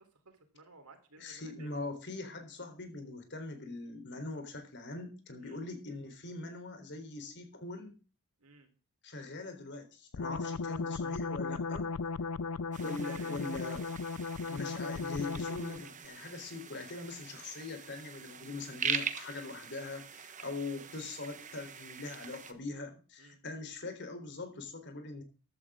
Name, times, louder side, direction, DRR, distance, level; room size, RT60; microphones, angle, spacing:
voice 1, 0.0-2.0 5.4-5.6 8.4-8.7 13.0-13.4 20.7-20.9 23.2-23.4, right 3 dB, 85° right, 6 dB, 3.8 m, -56 dB
voice 2, 1.2-7.9 9.0-11.9 12.8-13.9 14.5-25.2, left 3 dB, 50° left, 6 dB, 3.9 m, -42 dB
sound 1, 10.1-15.9, left 4 dB, 80° left, 0.5 m, -36 dB
sound 2, 12.7-22.5, right 7 dB, 35° right, 1.3 m, -42 dB
15.0 x 12.0 x 3.8 m, 0.37 s
head